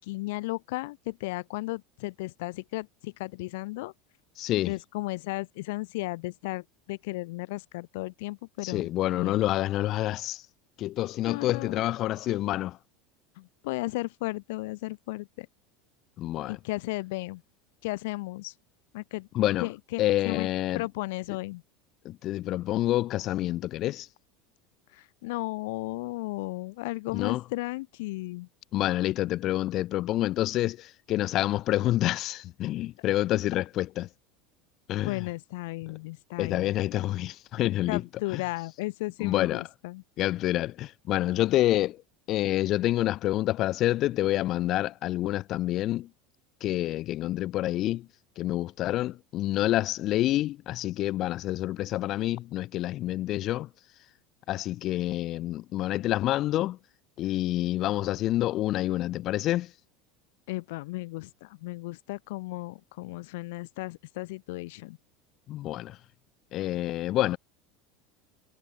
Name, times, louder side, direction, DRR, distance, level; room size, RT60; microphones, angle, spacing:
voice 1, 0.0-3.9 4.7-8.9 9.1-9.4 11.3-11.8 13.4-15.5 16.5-17.4 17.8-18.5 18.9-19.3 19.6-20.5 20.7-21.6 24.9-28.5 35.0-36.7 37.9-40.0 60.5-65.0, left 21 dB, 75° left, 4.1 m, -35 dB
voice 2, 4.4-4.7 8.6-10.4 10.8-12.8 16.2-16.6 19.3-19.7 20.0-20.8 22.0-24.1 27.1-27.4 28.7-34.1 34.9-35.2 36.4-38.0 38.3-38.4 39.2-39.6 40.2-42.0 42.3-46.1 46.6-48.1 48.4-53.7 54.5-56.8 57.2-59.7 65.5-66.0 66.5-67.4, left 15 dB, 50° left, 4.2 m, -28 dB
supercardioid pair, 110°, 0 cm